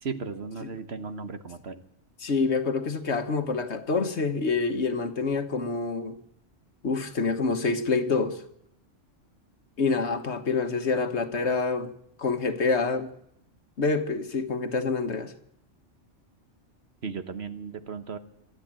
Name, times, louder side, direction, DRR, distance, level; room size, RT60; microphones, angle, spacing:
voice 1, 0.0-1.8 17.0-18.2, right 5 dB, 60° right, 1.4 m, -36 dB
voice 2, 2.2-6.1 6.8-8.4 9.8-11.9 12.2-13.1 13.8-15.3, left 4 dB, 65° left, 1.6 m, -27 dB
26.0 x 12.0 x 8.8 m
omnidirectional pair, 1.2 m